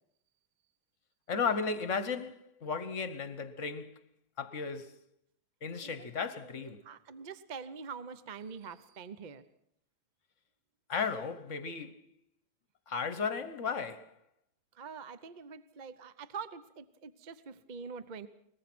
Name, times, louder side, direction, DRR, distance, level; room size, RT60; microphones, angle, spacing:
voice 1, 1.3-4.0 4.4-4.9 5.6-6.8 10.9-12.0 12.9-14.1, left 5 dB, 50° left, 1.3 m, -35 dB
voice 2, 5.7-6.1 6.4-9.4 14.7-18.3, right 5 dB, 40° right, 0.7 m, -45 dB
22.5 x 20.0 x 6.1 m
omnidirectional pair, 1.8 m